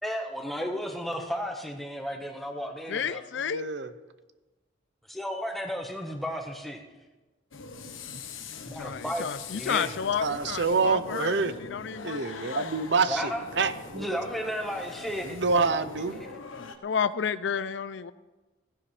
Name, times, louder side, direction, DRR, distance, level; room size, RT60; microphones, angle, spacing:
voice 1, 0.0-3.2 5.1-6.8 8.7-10.0 13.1-13.4 13.9-15.4 16.2-16.3, equal, ahead, 1 dB, 1.3 m, -33 dB
voice 2, 2.9-3.7 8.5-11.4 11.7-12.7 16.6-18.1, left 7 dB, 70° left, 15 dB, 0.4 m, -31 dB
voice 3, 3.4-3.9 8.1-8.2 10.2-11.5 12.0-14.2 15.2-16.2, right 4 dB, 65° right, 12 dB, 0.7 m, -27 dB
sound 1, 7.5-16.8, left 4 dB, 85° left, 1.2 m, -43 dB
16.0 x 16.0 x 3.3 m, 1.2 s
head